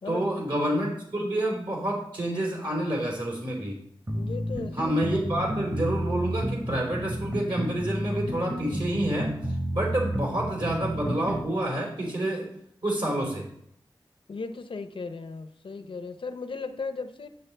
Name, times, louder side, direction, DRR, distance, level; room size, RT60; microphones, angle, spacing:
voice 1, 0.1-3.8 4.7-9.3 9.7-12.5 12.8-13.4, right 1 dB, 65° right, -3 dB, 3.7 m, -28 dB
voice 2, 4.1-4.9 14.3-17.3, left 4 dB, 75° left, 9 dB, 0.7 m, -36 dB
sound 1, 4.1-11.5, equal, 35° right, 1.4 m, -31 dB
10.5 x 7.8 x 3.4 m, 0.70 s
wide cardioid pair, 75°, 9 cm